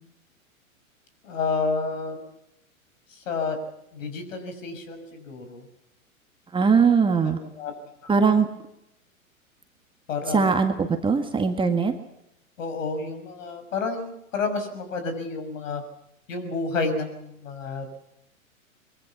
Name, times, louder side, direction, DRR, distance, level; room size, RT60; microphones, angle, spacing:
voice 1, 1.2-2.2 3.1-3.6 3.9-5.6 7.6-7.7 8.0-8.1 10.1-10.6 12.6-15.8 16.3-18.0, left 4 dB, 65° left, 8 dB, 6.3 m, -30 dB
voice 2, 6.5-7.4 8.1-8.5 10.3-11.9, right 5 dB, 10° right, 6 dB, 1.8 m, -20 dB
23.5 x 23.0 x 7.2 m, 0.81 s
hypercardioid pair, 110°, 42 cm